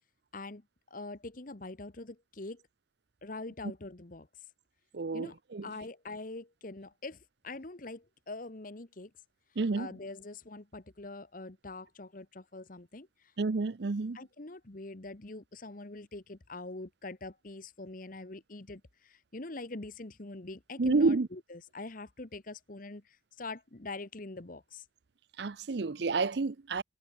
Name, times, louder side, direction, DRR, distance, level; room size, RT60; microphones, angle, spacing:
voice 1, 0.3-2.6 3.2-4.5 5.1-5.4 5.6-9.1 9.5-13.3 14.1-24.8, left 2 dB, 45° left, 1.2 m, -44 dB
voice 2, 4.9-5.7 9.6-9.9 13.4-14.2 20.8-21.3 25.4-26.8, right 3 dB, 60° right, 0.6 m, -29 dB
head